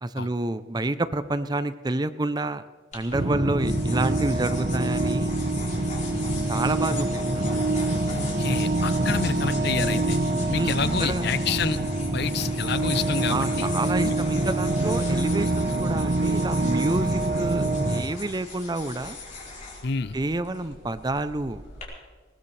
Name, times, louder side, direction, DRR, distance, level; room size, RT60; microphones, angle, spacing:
voice 1, 0.0-2.6 2.9-5.3 6.5-7.4 10.5-11.3 13.3-19.2 20.1-21.6, right 2 dB, 20° right, 12 dB, 0.5 m, -29 dB
sound 1, 2.9-21.8, left 3 dB, 40° left, 4.7 m, -39 dB
sound 2, 3.1-18.0, right 2 dB, 55° right, 1.4 m, -25 dB
voice 2, 8.1-10.2 10.5-11.8 12.1-13.7 14.0-14.1 19.8-20.2, left 5 dB, 60° left, 14 dB, 0.6 m, -29 dB
20.5 x 19.5 x 3.3 m, 1.4 s
head